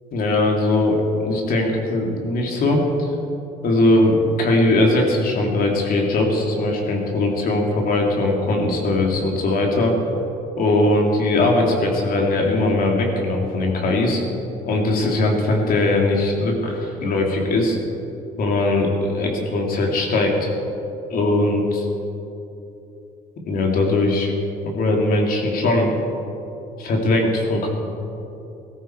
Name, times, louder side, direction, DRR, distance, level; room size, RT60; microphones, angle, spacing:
voice 1, 0.1-3.1 3.6-9.9 10.6-14.2 14.7-17.8 18.4-20.5 21.1-21.9 23.5-24.3 24.6-25.9 26.8-27.7, left 2 dB, 60° left, 1 dB, 2.8 m, -20 dB
17.0 x 14.0 x 4.6 m, 2.9 s
cardioid pair, 110°, 17 cm